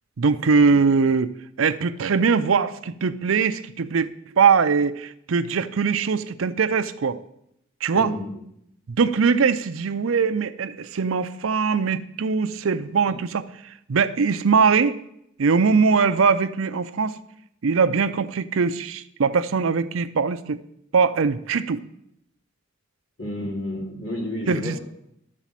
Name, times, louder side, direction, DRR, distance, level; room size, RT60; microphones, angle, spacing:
voice 1, 0.2-1.3 1.6-4.1 4.4-7.2 7.8-8.1 8.9-13.4 13.9-15.0 15.4-17.2 17.6-20.6 20.9-21.8 24.5-24.8, right 5 dB, 75° right, 12 dB, 0.5 m, -21 dB
voice 2, 7.9-8.4 13.1-13.2 23.2-24.8, left 1 dB, 60° left, -1 dB, 2.8 m, -31 dB
12.0 x 4.1 x 7.4 m, 0.78 s
head